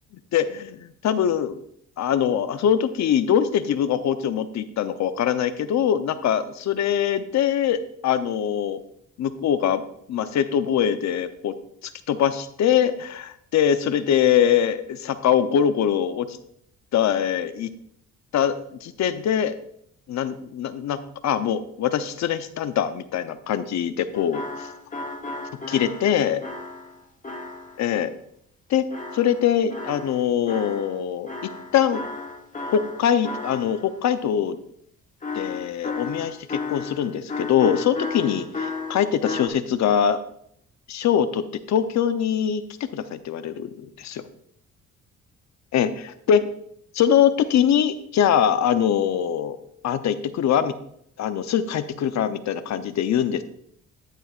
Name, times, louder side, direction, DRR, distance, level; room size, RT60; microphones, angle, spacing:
voice 1, 0.3-1.6 2.0-8.8 9.2-9.8 10.1-11.5 12.1-16.4 16.9-17.7 18.3-19.5 20.1-24.7 25.7-26.4 27.8-28.1 28.7-31.3 31.7-32.0 32.7-34.6 35.3-38.4 38.9-40.2 40.9-44.2 45.7-46.4 46.9-49.6 49.8-50.7 51.2-53.4, left 9 dB, 65° left, 11 dB, 0.8 m, -23 dB
sound 1, 24.1-27.9 28.9-31.0 31.3-34.0 35.2-39.5, left 3 dB, 25° left, 1.4 m, -34 dB
10.0 x 9.0 x 2.5 m, 0.70 s
cardioid pair, 90°, 30 cm